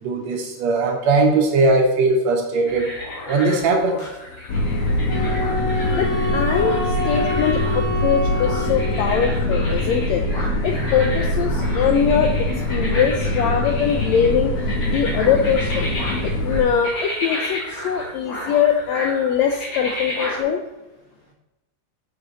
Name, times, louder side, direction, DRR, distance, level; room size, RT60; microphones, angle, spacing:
voice 1, 0.0-2.9 3.3-4.0, right 3 dB, 70° right, 2 dB, 1.9 m, -19 dB
sound 1, 2.7-20.4, left 1 dB, 50° left, 3.1 m, -33 dB
sound 2, 4.5-16.6, left 1 dB, 70° left, 2.4 m, -23 dB
Wind instrument woodwind instrument, 5.1-9.3, left 1 dB, 10° right, 2.1 m, -27 dB
voice 2, 5.8-10.2 10.6-12.4 12.7-15.9 16.2-20.6, left 7 dB, 85° left, 4 dB, 1.5 m, -22 dB
6.5 x 6.2 x 4.0 m, 1.0 s
omnidirectional pair, 3.7 m